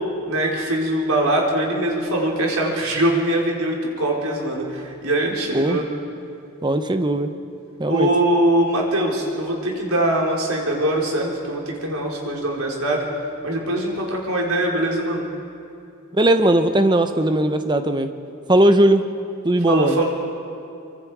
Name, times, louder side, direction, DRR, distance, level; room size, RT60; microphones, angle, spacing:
voice 1, 0.3-5.8 7.9-13.0 13.4-15.3 19.7-20.1, right 1 dB, 80° right, -1 dB, 4.1 m, -22 dB
voice 2, 6.6-7.3 7.8-8.1 16.1-18.1 18.5-19.0 19.4-20.0, right 1 dB, 20° right, 8 dB, 0.9 m, -18 dB
25.5 x 24.5 x 4.9 m, 2.7 s
head